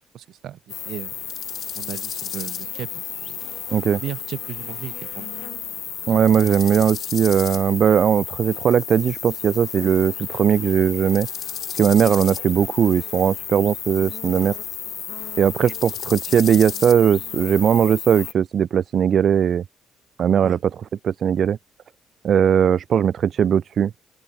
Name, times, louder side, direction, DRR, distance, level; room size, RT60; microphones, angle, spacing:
voice 1, 0.1-1.1 1.8-3.4 4.0-5.4 20.4-20.6, right 11 dB, 75° right, 5.5 m, -35 dB
sound 1, 0.7-18.3, left 9 dB, 65° left, 8.0 m, -32 dB
voice 2, 3.7-4.0 6.1-11.3 11.8-14.5 15.4-19.6 20.2-20.7 21.0-21.6 22.2-23.9, right 8 dB, 60° right, 1.5 m, -19 dB
open air
cardioid pair, 90°, 0 cm